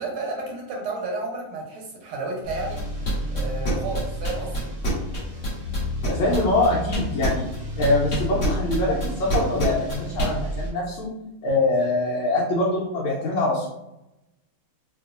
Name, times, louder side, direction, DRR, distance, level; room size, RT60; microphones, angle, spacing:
voice 1, 0.0-2.8 3.3-4.7, right 2 dB, 90° right, 0 dB, 1.7 m, -31 dB
sound 1, 2.4-10.7, equal, 60° right, 0.8 m, -32 dB
sound 2, 2.8-10.3, right 1 dB, 35° left, 1.2 m, -26 dB
voice 2, 6.1-7.5 7.8-11.1 11.4-13.7, left 2 dB, 75° left, -5 dB, 1.5 m, -23 dB
3.9 x 2.6 x 2.4 m, 0.89 s
omnidirectional pair, 2.4 m